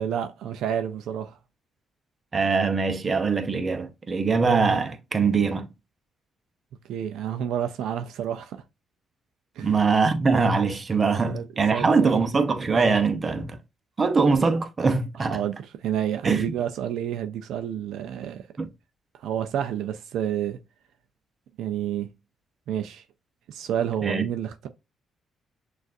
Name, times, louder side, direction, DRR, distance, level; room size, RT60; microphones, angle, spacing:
voice 1, 0.0-1.4 6.9-8.6 9.6-9.8 11.2-11.4 11.7-12.2 15.3-18.5 19.1-20.6 21.6-22.1 22.7-23.0 23.5-24.7, right 10 dB, 80° right, 0.4 m, -29 dB
voice 2, 2.3-5.7 9.6-13.6 14.0-15.4 16.2-16.5 18.6-18.7 24.0-24.2, right 4 dB, 35° right, 0.7 m, -22 dB
6.3 x 2.5 x 2.5 m
cardioid pair, 90°, 0 cm